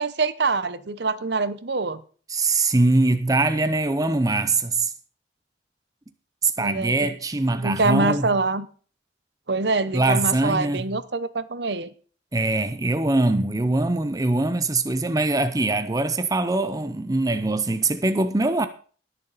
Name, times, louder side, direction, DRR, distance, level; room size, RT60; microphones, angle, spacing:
voice 1, 0.0-2.0 6.6-7.1 7.5-8.7 9.5-11.9, right 3 dB, 60° right, 0.8 m, -25 dB
voice 2, 2.3-4.9 6.4-8.3 9.9-10.8 12.3-18.7, right 2 dB, 20° right, 0.6 m, -22 dB
19.5 x 7.0 x 4.0 m
head